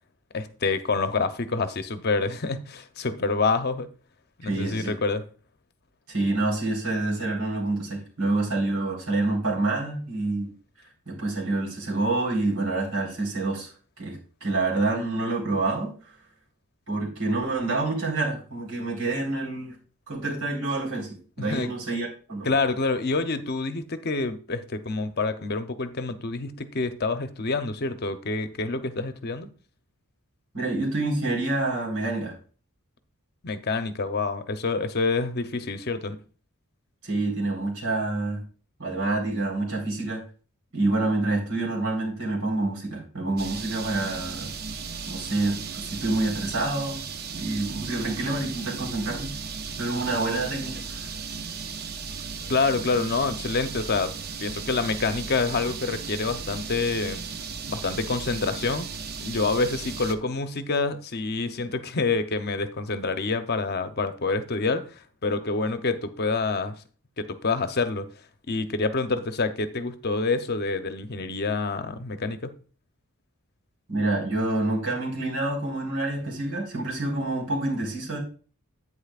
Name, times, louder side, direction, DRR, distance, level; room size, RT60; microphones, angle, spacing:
voice 1, 0.3-3.9 4.4-5.2 21.4-21.7 22.4-29.5 33.4-36.2 52.5-54.1 54.4-57.2 57.7-58.9 59.2-66.8 67.2-68.1 68.5-72.5, left 3 dB, 45° left, 0.8 m, -27 dB
voice 2, 4.4-5.0 6.1-10.5 11.1-13.7 14.0-15.9 16.9-19.8 20.1-22.5 30.5-32.4 37.0-38.4 38.8-40.2 40.7-44.5 45.1-47.0 47.3-49.3 49.8-51.1 73.9-78.2, right 2 dB, 75° right, 4.1 m, -27 dB
sound 1, 43.4-60.1, right 5 dB, 45° right, 0.6 m, -36 dB
10.5 x 8.8 x 2.4 m
head